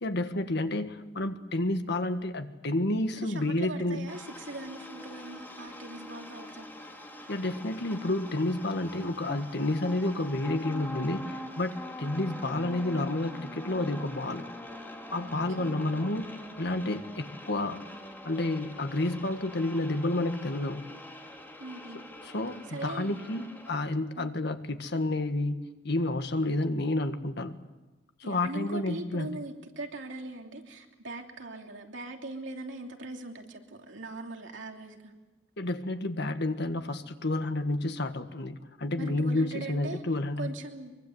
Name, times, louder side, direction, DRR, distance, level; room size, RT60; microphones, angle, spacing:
voice 1, 0.0-4.0 7.3-14.5 15.1-16.3 16.6-17.8 18.2-20.8 22.2-27.6 28.2-29.3 35.6-40.5, left 2 dB, 65° left, 8 dB, 1.7 m, -30 dB
voice 2, 3.2-6.7 15.2-15.3 15.6-15.9 21.6-22.0 22.7-23.2 24.2-24.3 28.2-35.1 39.0-40.0 40.4-40.9, right 2 dB, 75° right, 2 dB, 3.0 m, -40 dB
sound 1, 4.1-23.7, left 1 dB, 10° left, 3.2 m, -44 dB
24.0 x 23.5 x 8.0 m, 1.1 s
head